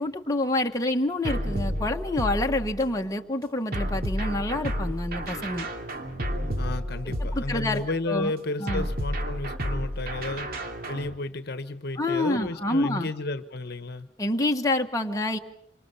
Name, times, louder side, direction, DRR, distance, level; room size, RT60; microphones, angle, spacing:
voice 1, 0.0-5.7 7.3-7.8 8.1-8.3 8.6-8.9 12.0-13.1 14.2-15.4, left 2 dB, 15° left, 3 dB, 1.4 m, -27 dB
sound 1, 1.2-3.0 3.7-7.9 8.7-11.1, equal, 50° right, 2.6 m, -31 dB
voice 2, 6.6-10.5 10.9-14.1, left 2 dB, 55° left, 11 dB, 1.2 m, -32 dB
27.0 x 26.5 x 5.7 m, 0.71 s
head